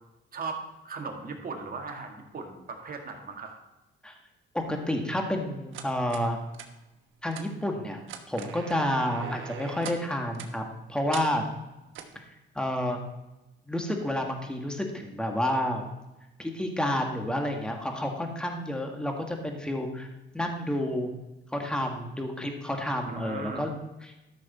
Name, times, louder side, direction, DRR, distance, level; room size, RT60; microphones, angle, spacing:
voice 1, 0.3-3.6 23.1-23.6, right 4 dB, 45° right, 3 dB, 2.0 m, -38 dB
voice 2, 4.5-6.4 7.2-8.0 8.3-11.5 12.6-13.0 13.7-15.9 16.4-20.1 20.3-21.1 21.5-24.1, left 1 dB, 5° left, 2 dB, 1.7 m, -30 dB
sound 1, 5.7-6.3 6.5-6.7 7.3-7.4 8.0-10.0 10.3-10.5 11.1-11.3 11.9-12.2, right 8 dB, 80° right, 1.1 m, -41 dB
13.0 x 6.4 x 4.2 m, 0.99 s
cardioid pair, 90°, 20 cm